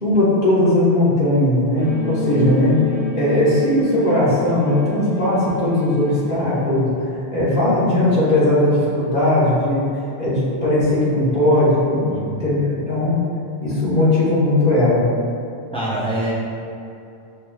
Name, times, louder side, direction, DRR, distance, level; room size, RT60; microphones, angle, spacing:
voice 1, 0.0-2.7 3.1-9.9 10.2-13.2 13.6-15.0, left 1 dB, 45° left, -9 dB, 1.4 m, -18 dB
sound 1, 1.7-6.8, left 2 dB, 30° right, 1.6 m, -30 dB
voice 2, 15.7-16.3, right 1 dB, 5° left, -7 dB, 0.5 m, -26 dB
6.6 x 3.0 x 2.3 m, 2.6 s
omnidirectional pair, 1.3 m